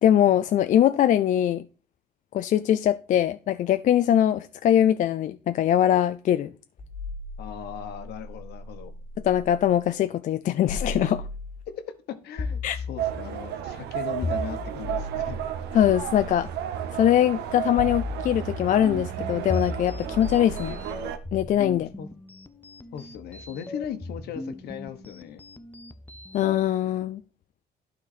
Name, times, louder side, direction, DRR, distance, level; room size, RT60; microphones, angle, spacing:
voice 1, 0.0-1.6 2.3-6.5 9.2-11.3 12.6-12.8 15.7-16.5 16.9-20.8 21.3-21.9 26.3-27.2, left 11 dB, 50° left, 0.4 m, -22 dB
sound 1, 6.8-9.6 10.7-11.7 12.4-13.5 14.2-16.5 17.8-18.9 19.5-21.7, left 3 dB, 30° left, 1.1 m, -35 dB
voice 2, 7.4-8.9 11.7-15.4 22.0-22.1 22.9-25.4, left 9 dB, 70° left, 1.2 m, -38 dB
sound 2, 13.0-21.2, right 10 dB, 80° right, 0.9 m, -33 dB
sound 3, 18.3-26.6, left 2 dB, 10° left, 0.6 m, -41 dB
11.5 x 4.2 x 4.2 m
cardioid pair, 110°, 17 cm